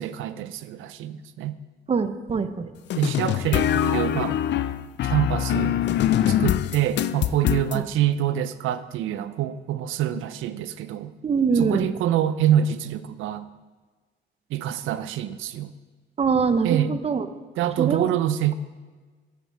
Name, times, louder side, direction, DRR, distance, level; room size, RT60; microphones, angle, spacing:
voice 1, 0.0-1.6 3.0-4.4 5.0-5.7 6.3-11.1 11.6-13.4 14.5-15.7 16.6-17.0 17.6-18.5, right 10 dB, 85° right, 14 dB, 0.5 m, -26 dB
voice 2, 1.9-2.7 7.7-7.8 11.2-11.9 16.2-17.3 17.8-18.1, right 5 dB, 30° right, 11 dB, 0.7 m, -23 dB
sound 1, 2.9-7.8, left 11 dB, 60° left, 0.4 m, -23 dB
9.5 x 8.4 x 4.2 m, 1.4 s
cardioid pair, 90°, 20 cm